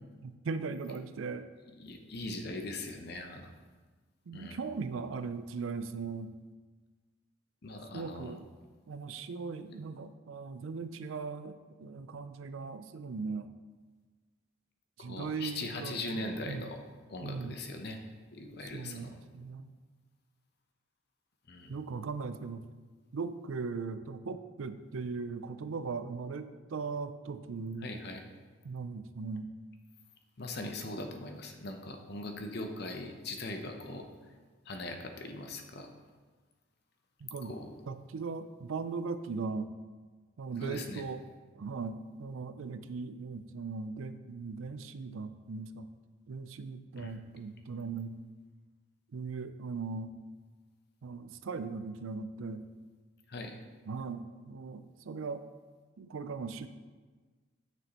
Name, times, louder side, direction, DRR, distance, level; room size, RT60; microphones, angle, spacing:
voice 1, 0.2-1.5 4.3-6.3 7.9-8.4 8.9-13.5 15.0-16.7 17.2-17.6 18.7-19.7 21.7-22.6 23.1-28.0 28.6-29.5 37.2-37.5 37.9-39.7 40.4-41.2 41.6-45.9 46.3-48.2 49.1-50.1 51.0-52.6 53.9-55.4 56.0-56.7, right 4 dB, 85° right, 11 dB, 0.4 m, -39 dB
voice 2, 1.8-3.5 4.3-4.6 7.6-8.4 15.0-16.8 17.1-18.0 18.3-19.2 21.5-21.8 27.8-28.2 30.4-34.1 34.6-35.9 37.4-37.7 40.6-41.0 47.0-47.2 53.3-53.6, left 2 dB, 50° left, 5 dB, 0.8 m, -40 dB
9.5 x 6.1 x 3.0 m, 1.4 s
head